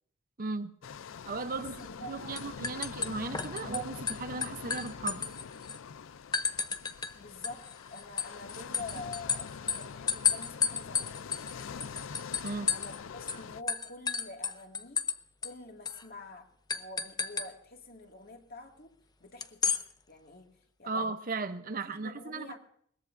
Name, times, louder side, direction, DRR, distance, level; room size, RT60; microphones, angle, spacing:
voice 1, 0.4-0.8 1.3-1.8 2.1-5.2 12.4-12.7 20.8-22.6, right 3 dB, 45° right, 10 dB, 0.8 m, -36 dB
sound 1, 0.8-13.6, left 6 dB, 75° left, 0.5 m, -44 dB
voice 2, 1.5-2.5 7.1-11.2 12.7-15.0 15.4-18.9 19.2-20.5 20.8-21.1 21.7-22.6, left 2 dB, 50° left, 2 dB, 2.2 m, -47 dB
sound 2, 1.8-2.1 2.4-3.8 4.1-5.8 6.3-7.1 7.4-13.0 13.3-13.4 13.7-15.2 15.4-15.5 15.9-16.0 16.7-17.5 19.4-19.8, left 6 dB, 20° left, 0.6 m, -32 dB
21.5 x 19.0 x 2.6 m, 0.66 s
head